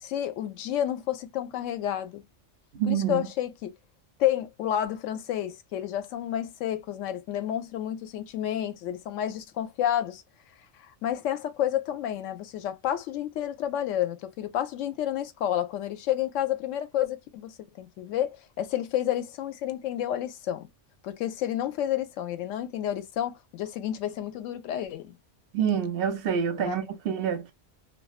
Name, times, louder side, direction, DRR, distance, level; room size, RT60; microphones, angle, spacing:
voice 1, 0.0-2.2 2.9-3.7 4.2-10.2 11.0-20.7 21.0-25.2 26.6-26.8, left 11 dB, 85° left, 0.9 m, -30 dB
voice 2, 2.7-3.3 25.5-27.5, right 8 dB, 60° right, 0.6 m, -27 dB
2.5 x 2.2 x 2.3 m
omnidirectional pair, 1.3 m